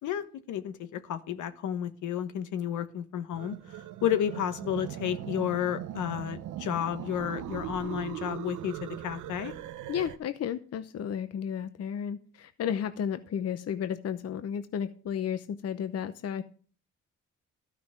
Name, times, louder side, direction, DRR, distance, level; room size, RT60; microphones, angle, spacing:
voice 1, 0.0-9.5, left 10 dB, 80° left, 11 dB, 1.2 m, -32 dB
sound 1, 3.3-10.2, right 12 dB, 85° right, 0.8 m, -39 dB
voice 2, 9.9-16.4, left 8 dB, 55° left, 11 dB, 0.8 m, -33 dB
12.5 x 5.9 x 7.2 m, 0.43 s
cardioid pair, 90°, 30 cm